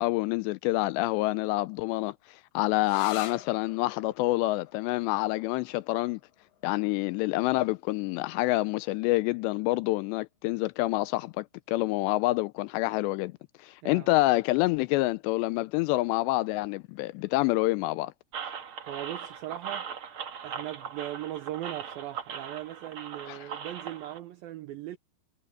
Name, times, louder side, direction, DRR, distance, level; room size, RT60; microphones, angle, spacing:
voice 1, 0.0-6.2 6.6-13.4 13.6-18.1 23.3-23.5, left 19 dB, 85° left, 2.7 m, -27 dB
sound 1, 2.8-10.2, left 12 dB, 60° left, 2.6 m, -46 dB
sound 2, 18.3-24.2, right 7 dB, 70° right, 1.2 m, -39 dB
voice 2, 18.9-19.9 20.4-25.0, right 14 dB, 90° right, 2.1 m, -38 dB
omnidirectional pair, 5.1 m